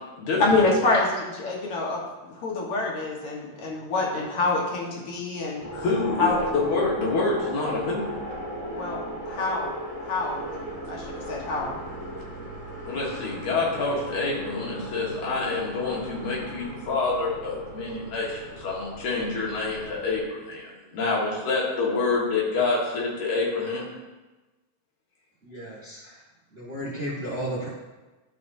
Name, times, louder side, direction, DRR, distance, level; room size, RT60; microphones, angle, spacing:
voice 1, 0.4-5.6 6.2-6.5 8.7-9.7 10.0-10.6 10.9-11.8, left 3 dB, 55° left, -2 dB, 2.1 m, -26 dB
sound 1, 5.6-20.2, right 1 dB, 20° left, 1.1 m, -37 dB
voice 2, 5.7-8.1 12.9-23.9, left 3 dB, 85° left, -4 dB, 3.1 m, -27 dB
voice 3, 25.4-26.2 26.5-27.7, right 1 dB, 45° right, -7 dB, 0.8 m, -33 dB
12.0 x 5.2 x 2.7 m, 1.2 s
omnidirectional pair, 3.3 m